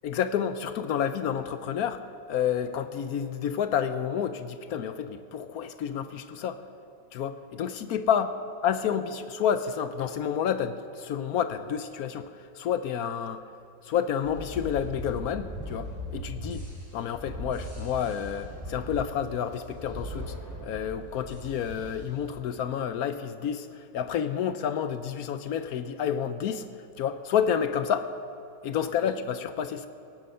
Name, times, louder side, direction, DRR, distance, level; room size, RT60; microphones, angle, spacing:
voice 1, 0.0-2.0 2.3-6.6 7.1-8.3 8.6-13.4 13.8-16.6 16.9-20.3 20.6-26.7 27.0-28.1 28.6-29.9, left 8 dB, 70° left, 11 dB, 0.9 m, -29 dB
sound 1, 14.2-22.3, equal, 10° left, 3.2 m, -39 dB
17.5 x 9.7 x 6.5 m, 2.6 s
omnidirectional pair, 1.9 m